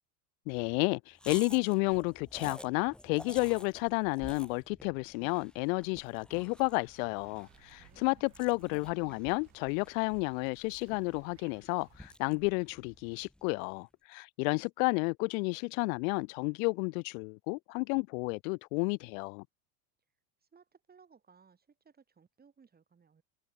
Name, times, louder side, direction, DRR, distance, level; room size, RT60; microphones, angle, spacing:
voice 1, 0.5-19.4, left 31 dB, 60° left, 0.7 m, -31 dB
sound 1, 1.2-13.6, left 1 dB, ahead, 1.3 m, -51 dB
sound 2, 6.5-12.2, right 27 dB, 65° right, 3.0 m, -62 dB
voice 2, 7.6-8.3 20.4-23.2, right 6 dB, 20° right, 5.5 m, -62 dB
supercardioid pair, 125°, 47 cm